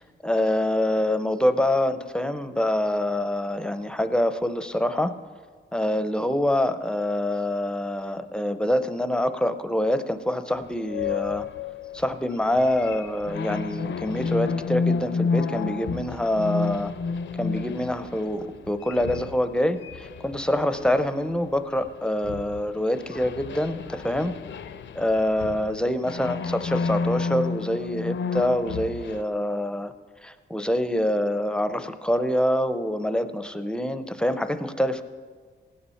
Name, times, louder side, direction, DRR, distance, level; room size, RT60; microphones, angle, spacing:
voice 1, 0.0-5.1 5.7-11.5 11.9-16.9 17.4-24.3 25.0-29.9 30.2-35.0, left 1 dB, 5° left, 10 dB, 0.6 m, -25 dB
sound 1, 10.8-21.9 22.2-29.2, left 5 dB, 75° left, 0.5 m, -31 dB
16.5 x 9.9 x 5.6 m, 1.5 s
wide cardioid pair, 165°, 19 cm